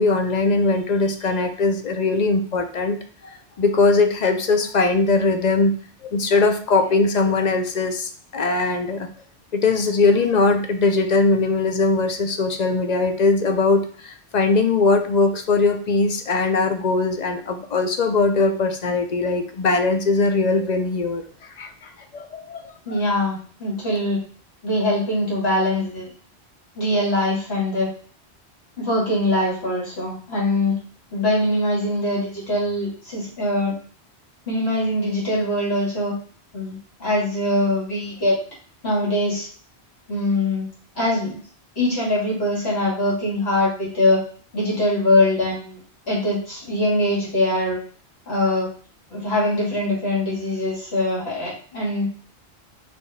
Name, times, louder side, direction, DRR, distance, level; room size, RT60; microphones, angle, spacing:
voice 1, 0.0-5.7 6.0-9.1 9.5-23.0, left 3 dB, 50° left, 7 dB, 0.6 m, -21 dB
voice 2, 22.9-24.2 24.6-26.1 26.8-27.9 28.8-30.8 31.1-33.7 34.5-36.2 36.5-38.4 38.8-39.5 40.1-40.7 41.0-41.4 41.8-44.2 44.5-45.8 46.1-47.8 48.3-48.7 49.1-52.1, left 1 dB, 70° left, -5 dB, 2.3 m, -22 dB
4.3 x 3.3 x 3.3 m, 0.44 s
omnidirectional pair, 1.1 m